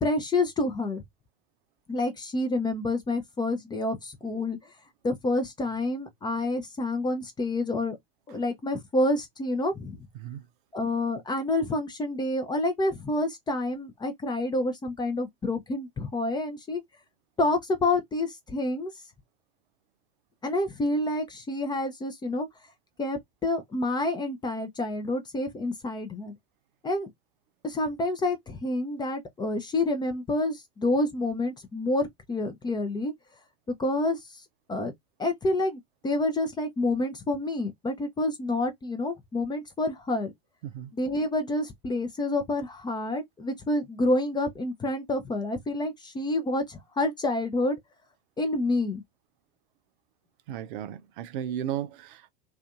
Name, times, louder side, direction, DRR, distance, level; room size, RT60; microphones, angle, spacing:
voice 1, 0.0-1.0 1.9-4.6 5.0-8.0 8.3-10.0 10.7-16.8 17.4-18.9 20.4-22.5 23.0-26.4 26.8-27.1 27.6-33.1 33.7-34.4 34.7-34.9 35.2-40.3 40.9-47.8 48.4-49.0, left 2 dB, 15° left, 0.5 m, -28 dB
voice 2, 50.5-52.3, right 10 dB, 55° right, 0.5 m, -34 dB
2.5 x 2.4 x 2.3 m
figure-of-eight pair, 85°, 32 cm